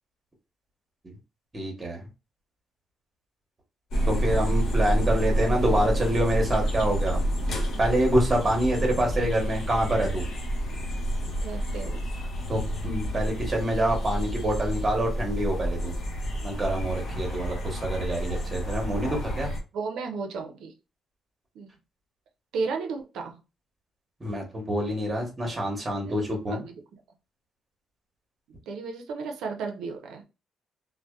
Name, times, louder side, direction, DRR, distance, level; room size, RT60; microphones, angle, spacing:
voice 1, 1.5-2.0 4.1-7.2 7.8-10.2 12.5-16.0 16.4-19.5 24.2-26.6, right 1 dB, 25° right, 1 dB, 0.9 m, -26 dB
sound 1, 3.9-19.6, equal, 65° left, 0.8 m, -29 dB
voice 2, 11.4-12.1 19.7-20.7 21.5-21.7 22.5-23.4 26.0-26.8 28.7-30.2, right 4 dB, 80° right, 3 dB, 0.5 m, -34 dB
2.6 x 2.1 x 2.2 m, 0.29 s
cardioid pair, 90°, 0 cm